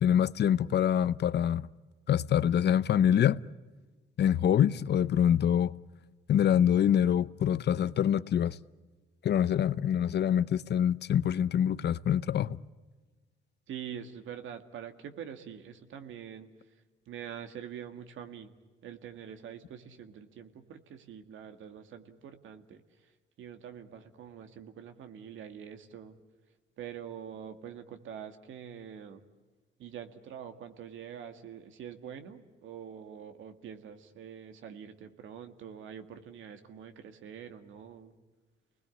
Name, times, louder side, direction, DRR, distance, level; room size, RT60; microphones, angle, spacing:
voice 1, 0.0-1.7 2.1-3.4 4.2-5.7 6.3-8.6 9.2-12.6, left 9 dB, 60° left, 0.7 m, -25 dB
voice 2, 13.7-16.5 17.1-18.5 18.8-23.1 23.4-26.2 26.8-29.2 29.8-38.1, right 8 dB, 75° right, 2.1 m, -45 dB
30.0 x 20.5 x 8.6 m
cardioid pair, 90°, 20 cm